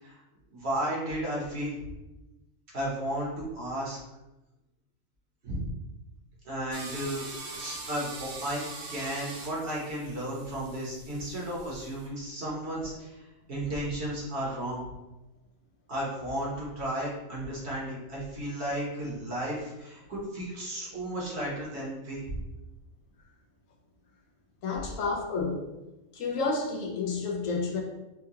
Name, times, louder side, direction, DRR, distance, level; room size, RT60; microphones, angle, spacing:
voice 1, 0.5-1.8 2.7-4.0 5.4-5.7 6.4-7.2 7.5-8.6 8.9-13.1 13.5-14.9 15.9-22.4, right 1 dB, 55° right, -5 dB, 1.2 m, -34 dB
sound 1, 6.7-12.1, right 3 dB, 90° right, 1.2 m, -43 dB
voice 2, 24.6-25.6 26.1-27.8, left 4 dB, 75° left, 1 dB, 0.9 m, -30 dB
4.5 x 2.2 x 2.8 m, 1.0 s
omnidirectional pair, 1.5 m